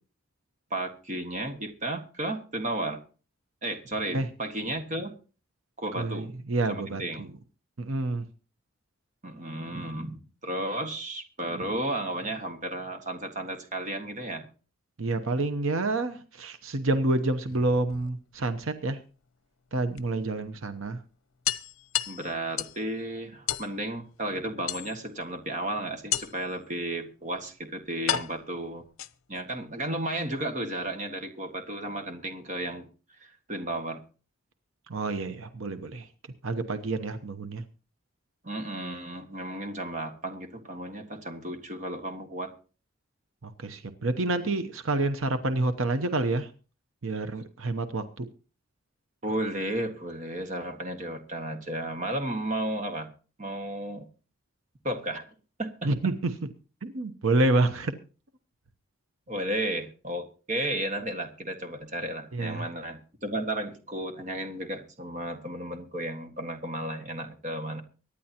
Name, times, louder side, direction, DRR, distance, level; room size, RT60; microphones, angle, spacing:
voice 1, 0.7-3.0 3.6-5.1 5.8-6.3 6.7-7.3 9.2-14.5 22.1-28.8 29.3-32.9 33.2-34.0 38.4-42.5 49.2-53.1 53.4-54.1 54.8-55.2 55.6-55.7 59.3-67.8, right 1 dB, 35° right, 6 dB, 1.6 m, -33 dB
voice 2, 6.0-7.3 7.8-8.3 15.0-19.0 19.7-21.0 34.9-36.1 36.4-37.6 43.4-46.5 47.0-48.3 55.8-56.3 56.9-57.9 62.3-62.7, right 2 dB, 75° right, 9 dB, 0.9 m, -28 dB
sound 1, 17.3-18.5 20.0-20.1 20.4-20.5 20.8-20.9 21.4-22.8 23.5-23.7 24.7-25.2 26.1-26.5 27.4-27.5 28.1-29.4, left 11 dB, 85° left, 0.7 m, -32 dB
24.0 x 10.0 x 2.9 m, 0.36 s
head